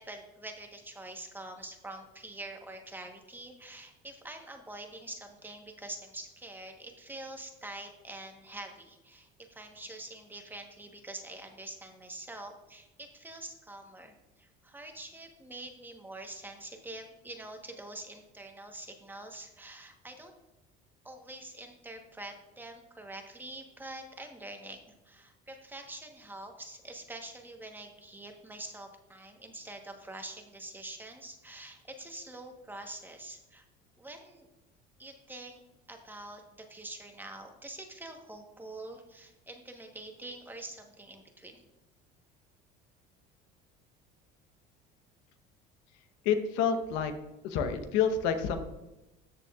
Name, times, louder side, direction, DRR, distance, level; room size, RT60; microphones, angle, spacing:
voice 1, 0.0-20.3 21.0-33.6 34.0-34.5 35.0-35.6 35.9-41.7, right 2 dB, 10° right, 4 dB, 1.1 m, -45 dB
voice 2, 46.2-47.1 47.4-48.6, left 7 dB, 80° left, 8 dB, 1.0 m, -28 dB
13.5 x 6.7 x 2.4 m, 0.97 s
supercardioid pair, 115°, 19 cm